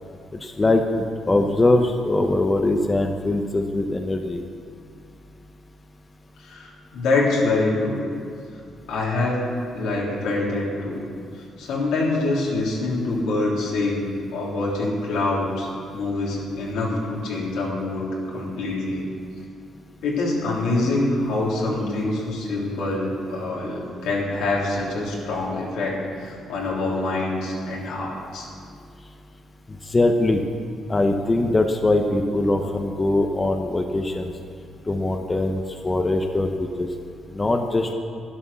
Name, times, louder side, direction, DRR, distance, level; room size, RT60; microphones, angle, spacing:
voice 1, 0.3-4.4 29.7-30.4 30.9-34.3 34.9-36.9 37.3-37.9, left 2 dB, 25° left, 4 dB, 0.9 m, -22 dB
voice 2, 6.4-8.0 8.9-11.0 11.6-19.0 20.0-28.5, left 2 dB, 85° left, -4 dB, 3.4 m, -25 dB
11.0 x 10.5 x 6.9 m, 2.3 s
cardioid pair, 90°, 0 cm